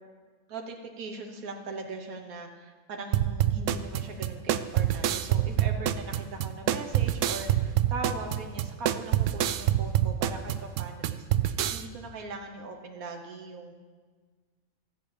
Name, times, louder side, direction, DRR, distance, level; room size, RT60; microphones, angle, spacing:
voice 1, 0.5-13.7, right 3 dB, 85° right, 3 dB, 1.5 m, -40 dB
sound 1, 3.1-11.8, right 12 dB, 70° right, 0.8 m, -26 dB
13.0 x 6.2 x 8.6 m, 1.5 s
omnidirectional pair, 1.5 m